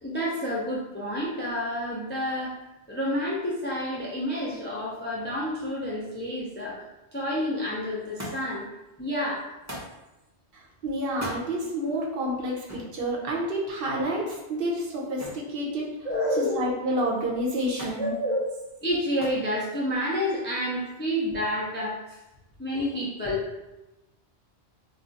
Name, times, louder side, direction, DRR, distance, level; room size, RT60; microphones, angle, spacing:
voice 1, 0.0-2.6 2.9-6.8 7.1-8.6 9.0-9.5 16.0-16.6 18.0-18.5 18.8-22.0 22.6-23.5, equal, 15° left, -5 dB, 0.3 m, -29 dB
Thump thud, 8.2-8.7 9.7-10.0 11.1-11.5 12.7-12.9 15.2-15.5 15.9-16.4 17.8-18.1 19.2-19.5 20.4-20.9 21.9-22.0, equal, 20° right, 0.6 m, -39 dB
voice 2, 10.5-15.8 16.3-18.1, right 1 dB, 60° right, -3 dB, 0.8 m, -29 dB
2.4 x 2.3 x 3.9 m, 0.98 s
omnidirectional pair, 1.1 m